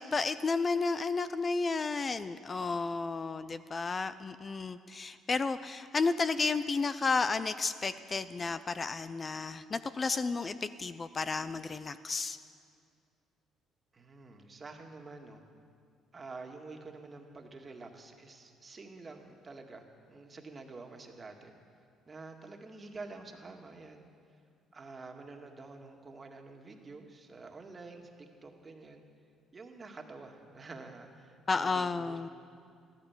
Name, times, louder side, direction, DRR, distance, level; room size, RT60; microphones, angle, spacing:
voice 1, 0.0-12.4 31.5-32.3, left 4 dB, 35° left, 13 dB, 0.5 m, -32 dB
voice 2, 13.9-15.4 16.1-21.6 22.1-24.1 24.7-29.0 29.5-32.3, right 3 dB, 35° right, 3 dB, 1.9 m, -48 dB
14.0 x 12.5 x 7.3 m, 2.3 s
supercardioid pair, 70°, 0 cm